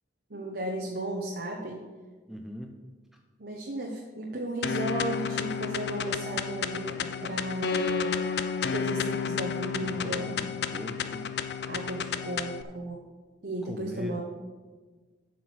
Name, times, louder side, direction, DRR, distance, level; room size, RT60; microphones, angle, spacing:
voice 1, 0.3-1.8 3.4-8.3 8.6-10.4 11.7-13.0 13.4-14.2, right 1 dB, 55° right, 0 dB, 1.0 m, -34 dB
voice 2, 2.3-2.8 9.8-11.3 13.6-14.2, equal, ahead, 2 dB, 0.5 m, -40 dB
sound 1, 4.6-12.6, left 6 dB, 60° left, 0.5 m, -31 dB
8.3 x 6.2 x 6.1 m, 1.4 s
head